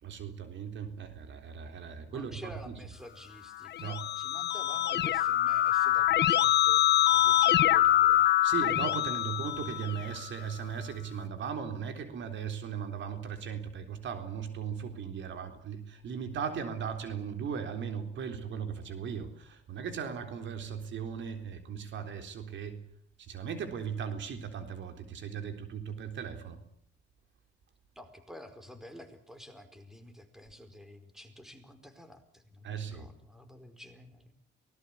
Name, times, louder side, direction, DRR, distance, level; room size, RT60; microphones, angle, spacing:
voice 1, 0.0-2.7 3.8-4.0 8.4-22.8 23.2-26.6 32.6-33.1, right 7 dB, 70° right, 7 dB, 3.7 m, -37 dB
voice 2, 2.1-8.3 9.2-9.3 27.9-34.4, left 1 dB, ahead, 9 dB, 4.7 m, -50 dB
Keyboard (musical), 3.6-10.2, left 13 dB, 60° left, 1.1 m, -25 dB
24.0 x 19.5 x 8.5 m, 0.67 s
cardioid pair, 90°, 20 cm